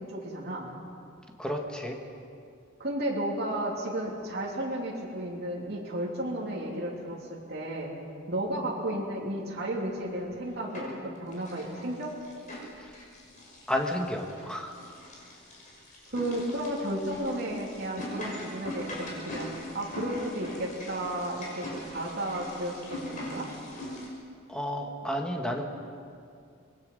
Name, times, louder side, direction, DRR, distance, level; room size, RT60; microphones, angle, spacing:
voice 1, 0.1-0.7 2.8-7.9 8.3-12.2 16.1-19.5 19.7-23.5, right 1 dB, 55° right, -4 dB, 3.0 m, -33 dB
voice 2, 1.4-2.0 12.8-12.9 13.7-14.8 24.5-25.6, equal, 5° left, 1 dB, 1.8 m, -31 dB
sound 1, 10.1-11.0 11.3-24.1, left 1 dB, 40° left, 5.7 m, -41 dB
25.5 x 20.5 x 5.4 m, 2.4 s
head